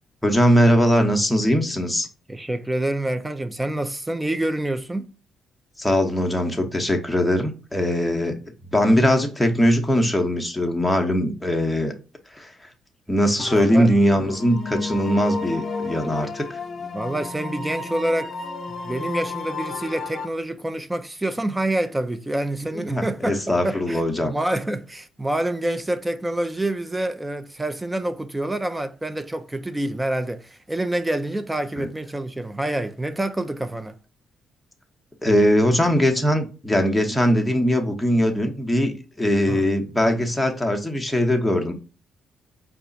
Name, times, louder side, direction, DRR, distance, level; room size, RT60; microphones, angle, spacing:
voice 1, 0.2-2.1 5.8-8.4 8.7-11.9 12.3-12.5 13.1-16.6 22.6-24.3 31.8-31.9 35.2-41.7, equal, 5° left, 0.9 m, -21 dB
voice 2, 2.3-5.1 13.5-13.9 16.9-18.3 18.8-34.0 39.5-39.7, right 1 dB, 10° right, 0.5 m, -27 dB
sound 1, 13.4-20.3, left 3 dB, 45° left, 0.8 m, -32 dB
4.8 x 2.4 x 3.9 m
cardioid pair, 90°, 0 cm